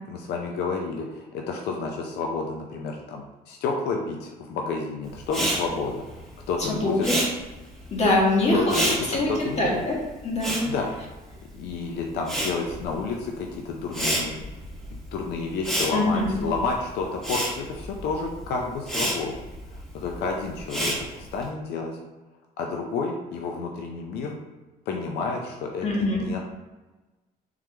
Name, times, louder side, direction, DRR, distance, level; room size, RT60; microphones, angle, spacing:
voice 1, 0.1-6.0 6.5-7.1 8.5-9.0 9.3-9.8 10.7-10.9 11.5-14.4 15.1-19.4 19.7-22.0 22.6-24.4 24.9-26.4, left 4 dB, 75° left, 1 dB, 0.6 m, -30 dB
Respiratory sounds, 5.2-11.7 12.0-21.4, right 1 dB, 5° left, 1.1 m, -30 dB
voice 2, 6.6-7.2 7.9-8.8 9.1-9.3 9.6-9.9 10.2-10.6 15.9-16.4 25.8-26.3, left 2 dB, 40° left, -3 dB, 1.5 m, -23 dB
3.7 x 3.1 x 3.3 m, 1.2 s
cardioid pair, 110°, 17 cm